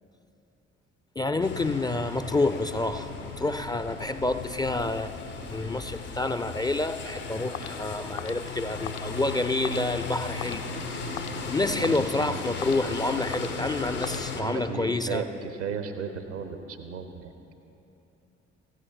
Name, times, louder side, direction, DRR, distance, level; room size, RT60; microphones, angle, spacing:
voice 1, 1.2-5.1 5.5-10.6 10.9-11.0 11.5-15.2, left 2 dB, 10° left, 11 dB, 0.3 m, -28 dB
sound 1, 1.4-14.4, left 3 dB, 80° left, 1.1 m, -36 dB
sound 2, 7.5-14.8, left 9 dB, 65° left, 0.6 m, -43 dB
voice 2, 11.7-12.4 14.4-17.3, right 6 dB, 80° right, 7 dB, 0.9 m, -35 dB
15.5 x 11.5 x 4.0 m, 3.0 s
figure-of-eight pair, 40°, 35 cm